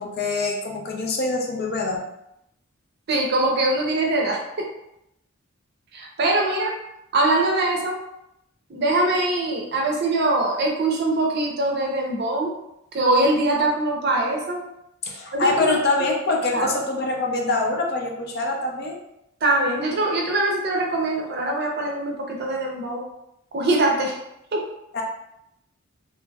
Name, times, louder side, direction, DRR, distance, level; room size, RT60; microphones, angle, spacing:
voice 1, 0.0-2.0 15.0-19.0 24.9-25.0, left 2 dB, 50° left, 1 dB, 0.5 m, -24 dB
voice 2, 3.1-4.7 5.9-6.8 7.1-8.0 8.7-12.5 12.9-14.7 15.3-15.7 16.5-16.7 19.4-23.0 23.5-24.2 24.5-24.7, right 2 dB, 50° right, 0 dB, 0.5 m, -22 dB
2.8 x 2.5 x 2.3 m, 0.81 s
head